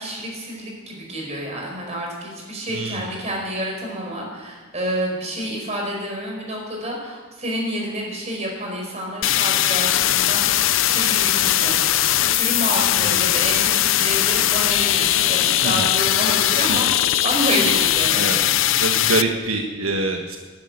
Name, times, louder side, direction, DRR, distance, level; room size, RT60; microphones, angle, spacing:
voice 1, 0.0-18.5, equal, 30° right, 0 dB, 4.8 m, -29 dB
voice 2, 2.7-3.1 13.0-13.3 15.6-15.9 16.7-16.8 18.1-18.4 18.8-20.4, right 2 dB, 80° right, 2 dB, 1.5 m, -25 dB
sound 1, 9.2-19.2, left 13 dB, 65° left, 0.5 m, -19 dB
12.5 x 11.5 x 9.8 m, 1.4 s
head